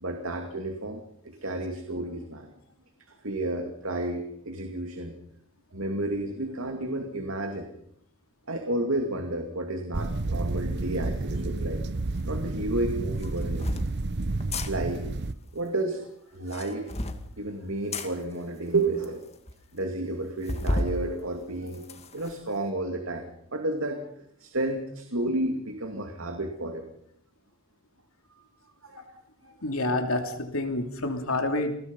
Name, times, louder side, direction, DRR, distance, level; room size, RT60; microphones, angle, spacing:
voice 1, 0.0-2.5 3.2-5.1 5.7-7.7 8.5-11.8 12.2-13.7 14.7-15.0 15.5-16.1 16.3-16.9 17.4-19.3 19.7-23.2 23.5-24.1 24.4-26.8 28.3-28.4 28.8-29.0 29.4-29.5, right 2 dB, 75° right, 5 dB, 2.4 m, -31 dB
sound 1, 9.9-15.3, right 2 dB, 55° right, 0.8 m, -30 dB
sound 2, 12.1-12.3 13.2-13.9 14.4-14.7 16.3-17.2 17.9-18.1 18.7-18.8 19.0-19.1 19.5-19.6 20.5-20.9 21.4-22.3, left 1 dB, 30° left, 2.1 m, -31 dB
voice 2, 29.6-31.7, left 2 dB, 80° left, 5 dB, 2.9 m, -28 dB
28.5 x 20.5 x 5.5 m, 0.71 s
head